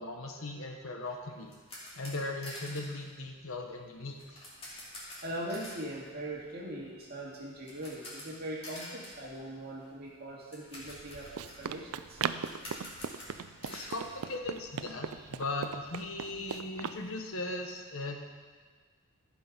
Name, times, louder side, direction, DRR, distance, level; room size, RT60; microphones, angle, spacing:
voice 1, 0.0-1.5 2.0-4.2 13.7-18.2, left 2 dB, 70° left, 3 dB, 1.2 m, -38 dB
sound 1, 1.0-15.0 15.3-15.4 15.8-15.9 16.2-17.7, left 1 dB, 25° left, 2.7 m, -49 dB
voice 2, 5.2-12.2 15.1-15.2, right 1 dB, 45° right, -3 dB, 2.0 m, -41 dB
Run, 10.8-17.0, right 7 dB, 75° right, 0.4 m, -39 dB
15.0 x 5.5 x 5.2 m, 1.5 s
head